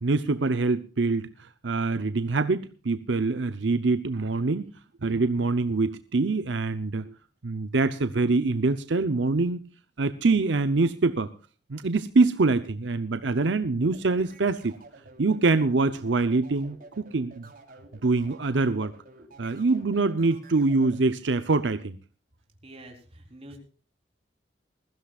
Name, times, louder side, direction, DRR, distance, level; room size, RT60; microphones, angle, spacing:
voice 1, 0.0-4.7 5.0-7.1 7.4-9.6 10.0-11.3 11.7-14.7 15.2-17.5 18.0-18.9 19.4-22.0, right 3 dB, 75° right, 11 dB, 0.7 m, -24 dB
sound 1, 13.8-21.0, right 2 dB, 50° right, 3.5 m, -50 dB
voice 2, 22.6-23.6, right 1 dB, 35° right, 3 dB, 3.9 m, -46 dB
21.0 x 15.0 x 2.4 m, 0.37 s
head